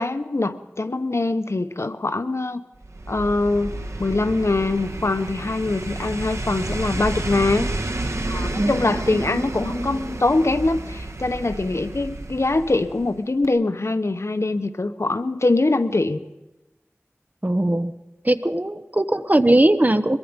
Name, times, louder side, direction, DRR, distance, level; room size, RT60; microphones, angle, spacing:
voice 1, 0.0-2.6 3.1-7.7 8.3-16.2, left 2 dB, 75° left, 10 dB, 1.0 m, -23 dB
sound 1, 2.8-13.2 13.4-13.5, right 2 dB, 80° right, 1.3 m, -30 dB
voice 2, 17.4-17.9 18.2-20.2, right 1 dB, 35° right, 11 dB, 1.0 m, -19 dB
23.0 x 21.5 x 5.3 m, 1.0 s
wide cardioid pair, 45°, 5 cm